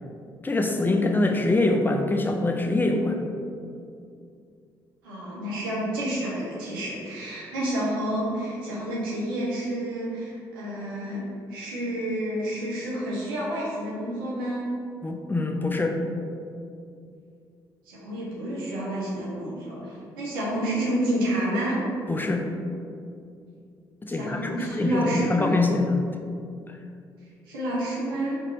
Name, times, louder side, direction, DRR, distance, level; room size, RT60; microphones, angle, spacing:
voice 1, 0.4-3.2 15.0-16.0 22.1-22.5 24.0-25.9, left 2 dB, 15° left, 3 dB, 0.5 m, -24 dB
voice 2, 5.0-11.2 11.5-14.7 17.9-21.8 24.1-25.5 27.5-28.4, right 1 dB, 80° right, -6 dB, 0.9 m, -29 dB
4.5 x 2.9 x 3.9 m, 2.4 s
figure-of-eight pair, 45°, 12 cm